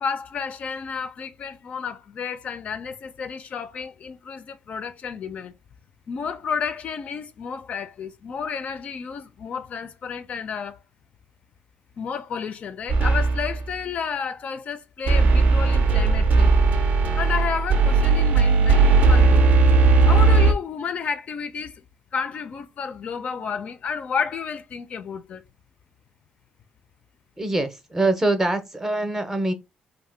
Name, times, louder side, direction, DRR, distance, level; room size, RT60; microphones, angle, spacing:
voice 1, 0.0-5.5 6.1-10.8 12.0-16.6 17.2-19.5 20.0-21.8 22.1-25.4, left 6 dB, 50° left, 0.3 m, -31 dB
sound 1, 12.9-13.6 15.1-20.5, right 3 dB, 60° right, 0.5 m, -17 dB
voice 2, 27.4-29.5, right 2 dB, 15° right, 0.5 m, -24 dB
2.7 x 2.1 x 3.1 m
cardioid pair, 105°, 3 cm